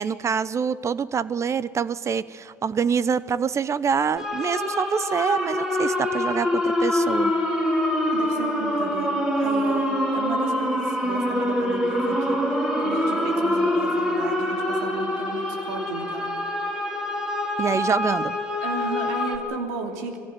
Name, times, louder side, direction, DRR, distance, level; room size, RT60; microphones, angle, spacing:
voice 1, 0.0-7.3 17.6-18.4, right 6 dB, 35° right, 18 dB, 0.8 m, -25 dB
sound 1, 4.2-19.4, left 1 dB, 5° right, 3.7 m, -25 dB
voice 2, 8.1-16.3 18.6-20.2, right 4 dB, 80° right, 4 dB, 2.9 m, -34 dB
22.0 x 15.5 x 9.4 m, 2.4 s
hypercardioid pair, 80°, 9 cm